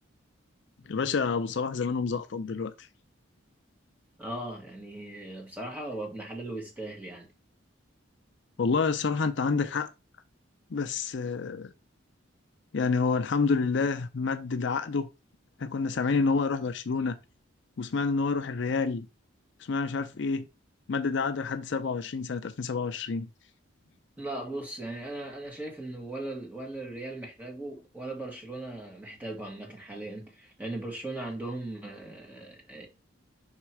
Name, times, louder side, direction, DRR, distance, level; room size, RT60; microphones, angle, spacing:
voice 1, 0.9-2.9 8.6-9.9 10.7-11.7 12.7-15.1 15.6-17.2 17.8-19.1 19.6-20.5 20.9-23.3, left 4 dB, 60° left, 0.5 m, -28 dB
voice 2, 4.2-7.3 24.2-32.9, right 2 dB, 10° right, 1.9 m, -38 dB
5.8 x 3.5 x 4.6 m
head